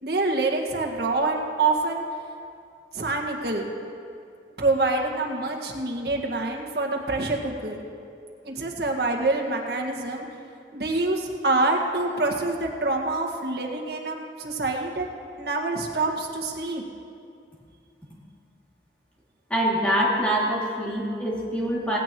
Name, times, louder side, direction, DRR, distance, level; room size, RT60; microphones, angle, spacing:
voice 1, 0.0-2.0 2.9-3.7 4.6-7.8 8.4-10.3 10.7-15.1 15.4-16.8, right 2 dB, 65° right, 0 dB, 1.7 m, -26 dB
voice 2, 19.5-22.0, equal, 5° left, -5 dB, 2.5 m, -24 dB
18.5 x 16.0 x 3.0 m, 2.4 s
head